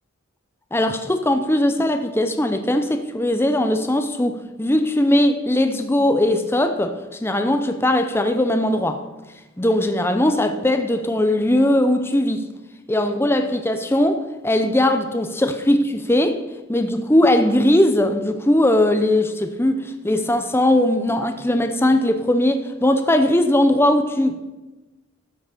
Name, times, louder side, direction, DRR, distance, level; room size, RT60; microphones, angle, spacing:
voice 1, 0.7-9.0 9.6-12.5 12.9-16.4 16.7-24.5, left 1 dB, 10° left, 7 dB, 0.6 m, -19 dB
12.5 x 5.9 x 6.6 m, 1.1 s
head